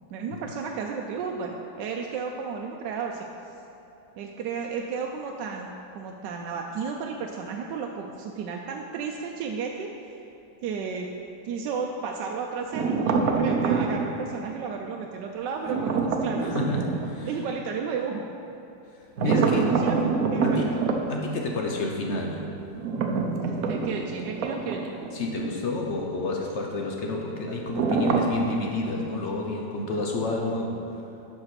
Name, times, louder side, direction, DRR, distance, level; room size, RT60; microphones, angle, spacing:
voice 1, 0.1-3.3 4.2-5.7 5.9-10.1 10.6-11.1 11.4-16.6 17.2-18.3 19.2-19.9 20.3-20.9 23.5-24.9, right 5 dB, 85° right, 1 dB, 1.2 m, -33 dB
sound 1, 12.7-14.1 15.6-17.1 19.2-21.0 22.8-25.2 25.4-25.6 27.7-28.5, right 4 dB, 65° right, 1.1 m, -25 dB
voice 2, 16.4-17.3 19.2-19.8 20.4-20.7 21.1-22.5 25.1-30.8, left 2 dB, 50° left, 0 dB, 0.9 m, -29 dB
7.8 x 6.1 x 5.7 m, 2.9 s
omnidirectional pair, 1.9 m